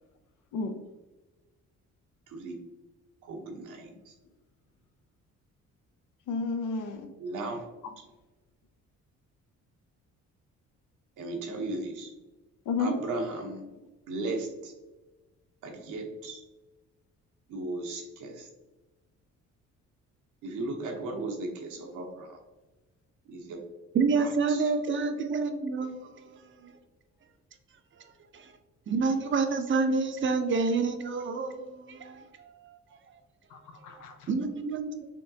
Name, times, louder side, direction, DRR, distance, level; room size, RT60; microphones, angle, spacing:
voice 1, 2.3-2.6 3.2-4.1 7.2-7.6 11.2-12.1 12.8-13.6 14.1-14.7 15.6-16.4 17.5-18.5 20.4-22.4 23.2-23.6 24.2-24.7, right 2 dB, 85° right, 1 dB, 1.0 m, -36 dB
voice 2, 6.3-7.1 12.7-13.0 33.5-34.3, left 4 dB, 85° left, 6 dB, 0.7 m, -32 dB
voice 3, 23.9-26.7 28.3-28.5 28.9-32.5 33.9-35.1, right 4 dB, 40° right, 7 dB, 0.6 m, -28 dB
5.1 x 2.9 x 2.7 m, 1.1 s
cardioid pair, 90°, 30 cm